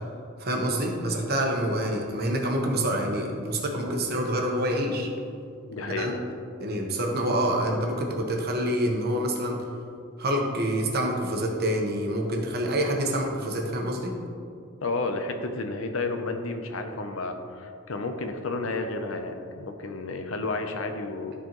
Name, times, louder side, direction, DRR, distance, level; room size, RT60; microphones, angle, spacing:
voice 1, 0.4-5.1 6.0-6.1 6.6-9.6 10.2-14.1, right 1 dB, 50° right, 1 dB, 1.0 m, -27 dB
voice 2, 5.7-6.2 14.8-21.3, left 3 dB, 65° left, 6 dB, 0.7 m, -31 dB
13.0 x 4.5 x 3.0 m, 2.5 s
head